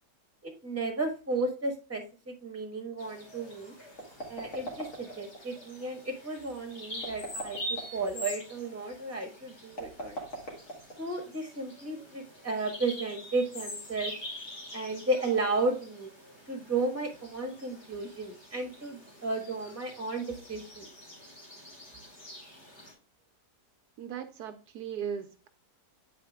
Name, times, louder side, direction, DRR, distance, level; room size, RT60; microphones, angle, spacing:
voice 1, 0.4-3.7 4.3-10.2 11.0-14.1 14.7-16.1 16.5-20.9, right 3 dB, 10° right, 1.3 m, -33 dB
Bird vocalization bird call bird song, 3.0-22.9, left 1 dB, 70° left, 3.3 m, -45 dB
sound 1, 4.0-5.4 6.9-8.1 9.7-11.2, right 1 dB, 50° left, 2.4 m, -40 dB
voice 2, 24.0-25.5, right 8 dB, 75° right, 1.1 m, -38 dB
8.7 x 4.3 x 3.5 m
omnidirectional pair, 1.8 m